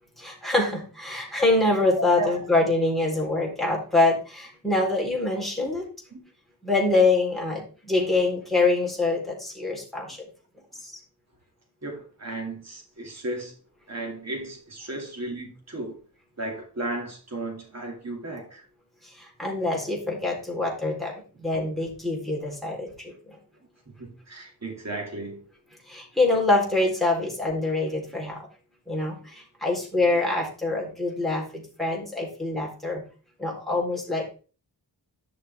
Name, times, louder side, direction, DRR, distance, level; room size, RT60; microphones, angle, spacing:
voice 1, 0.2-5.8 6.6-10.2 10.8-10.9 19.2-21.1 21.4-23.1 25.9-28.4 28.9-33.0 33.4-34.3, left 2 dB, ahead, 3.9 m, -25 dB
voice 2, 2.0-2.4 6.1-6.2 11.8-13.5 13.9-16.0 16.4-18.6 24.0-25.4, right 2 dB, 40° right, 2.6 m, -34 dB
11.0 x 6.6 x 3.6 m
wide cardioid pair, 85°, 41 cm